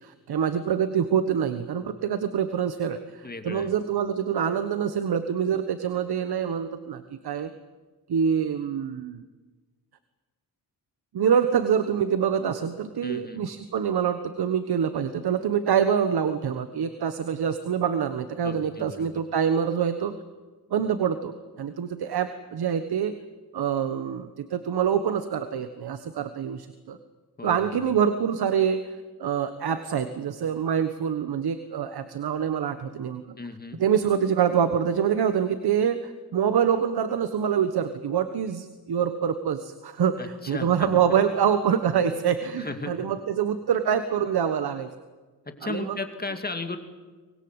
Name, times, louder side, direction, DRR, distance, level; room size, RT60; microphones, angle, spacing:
voice 1, 0.0-7.5 8.1-9.2 11.1-20.1 20.7-23.1 23.5-27.0 27.4-33.2 33.8-44.9 45.6-46.0, right 8 dB, 75° right, 10 dB, 1.4 m, -25 dB
voice 2, 3.2-3.7 13.0-13.4 18.4-19.2 27.4-28.0 33.4-33.8 40.2-41.0 42.6-43.1 45.5-46.8, left 3 dB, 25° left, 6 dB, 2.3 m, -35 dB
25.0 x 20.5 x 8.1 m, 1.3 s
wide cardioid pair, 120°, 38 cm